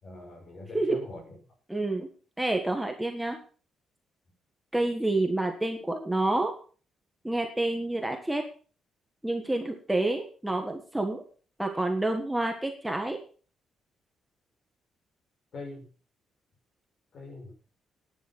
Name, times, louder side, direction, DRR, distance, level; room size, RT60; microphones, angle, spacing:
voice 1, 0.0-1.4 15.5-15.9 17.1-17.5, left 2 dB, 50° left, 2 dB, 6.0 m, -42 dB
voice 2, 1.7-2.1 2.4-3.4 4.7-6.5 7.2-8.4 9.2-11.2 11.6-13.2, right 2 dB, 5° right, 4 dB, 1.4 m, -28 dB
11.0 x 9.6 x 6.0 m, 0.40 s
cardioid pair, 160°, 0 cm